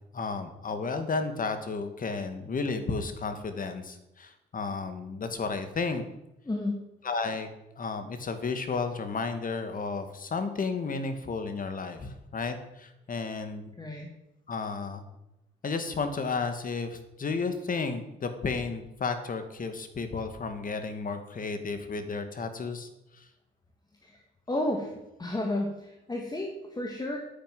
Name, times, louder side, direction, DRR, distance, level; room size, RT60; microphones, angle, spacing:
voice 1, 0.0-6.0 7.0-7.5 7.8-13.7 14.5-15.1 15.6-23.3, left 4 dB, 45° left, 8 dB, 2.4 m, -33 dB
voice 2, 6.5-6.8 13.8-14.1 24.0-24.2 24.5-24.9 25.2-27.2, left 1 dB, 20° left, 1 dB, 2.6 m, -32 dB
10.0 x 9.9 x 9.6 m, 0.90 s
cardioid pair, 90°, 20 cm